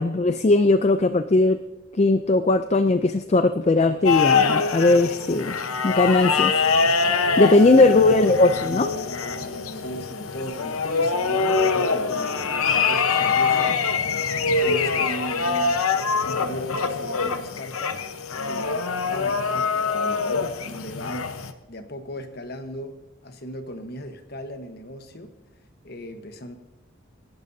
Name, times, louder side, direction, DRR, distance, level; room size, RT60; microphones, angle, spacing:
voice 1, 0.0-1.6 1.9-5.6 5.8-6.5 7.4-8.9, left 2 dB, 30° left, 9 dB, 0.4 m, -18 dB
sound 1, 4.0-21.5, left 5 dB, 90° left, 0.9 m, -24 dB
voice 2, 9.7-13.8 14.6-15.8 16.2-18.0 18.4-21.3 21.7-22.9 23.2-25.3 25.8-26.6, equal, 50° left, 7 dB, 1.2 m, -37 dB
27.0 x 11.5 x 2.7 m, 1.1 s
head